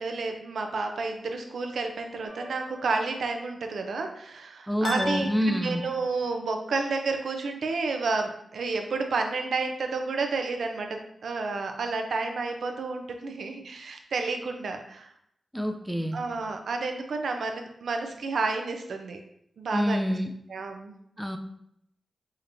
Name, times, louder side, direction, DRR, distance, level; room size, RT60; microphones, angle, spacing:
voice 1, 0.0-15.1 16.1-19.2 19.6-20.1 20.5-21.0, right 3 dB, 80° right, 4 dB, 0.5 m, -31 dB
sound 1, 2.3-3.0 4.8-6.3, left 1 dB, 75° left, 0.8 m, -37 dB
voice 2, 4.7-5.8 15.5-16.2 19.7-20.3 21.2-21.4, equal, ahead, 6 dB, 0.4 m, -27 dB
5.0 x 2.8 x 2.6 m, 0.74 s
cardioid pair, 65°, 0 cm